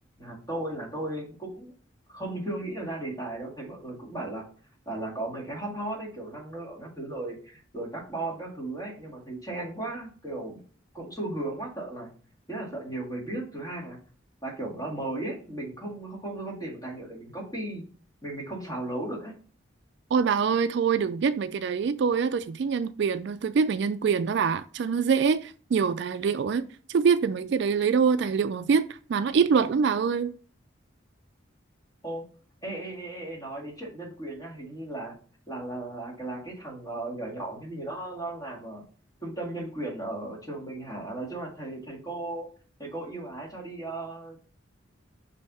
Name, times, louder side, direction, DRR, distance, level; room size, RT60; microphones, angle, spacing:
voice 1, 0.2-1.7 2.1-4.4 4.9-10.6 10.9-12.1 12.5-14.0 14.4-17.9 18.2-19.3 32.0-32.2 32.6-35.1 35.5-38.8 39.2-42.5 42.8-44.4, right 2 dB, 20° left, 2.0 m, -36 dB
voice 2, 20.1-30.3, right 6 dB, 60° right, 0.3 m, -25 dB
5.5 x 3.5 x 5.4 m
head